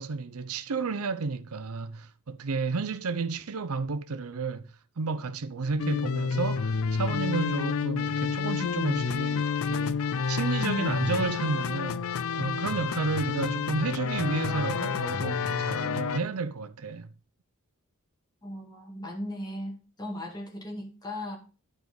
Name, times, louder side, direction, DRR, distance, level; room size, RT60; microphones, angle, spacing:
voice 1, 0.0-4.6 5.0-17.1, right 4 dB, 75° right, 0.6 m, -32 dB
sound 1, 5.8-16.2, left 6 dB, 65° left, 0.5 m, -29 dB
voice 2, 18.4-21.4, left 1 dB, 20° left, 2.1 m, -37 dB
11.5 x 4.7 x 5.2 m
head